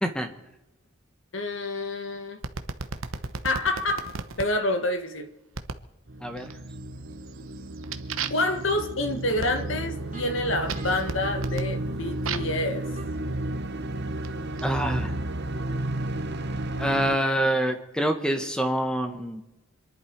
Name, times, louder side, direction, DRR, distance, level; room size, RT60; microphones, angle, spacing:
voice 1, 1.3-2.4 3.4-4.1 4.4-5.3 8.3-12.9, left 2 dB, 65° left, 1.7 m, -28 dB
sound 1, 2.4-4.5 5.5-5.9 6.4-6.8 7.2-12.6 13.4-14.6, right 5 dB, 75° right, 1.0 m, -37 dB
sound 2, 6.1-17.2, right 1 dB, 50° right, 1.0 m, -33 dB
voice 2, 6.2-6.5 14.6-15.1 16.8-19.4, right 1 dB, 5° left, 1.5 m, -26 dB
sound 3, 8.1-13.1, right 1 dB, 35° right, 2.5 m, -43 dB
26.5 x 11.0 x 4.7 m
head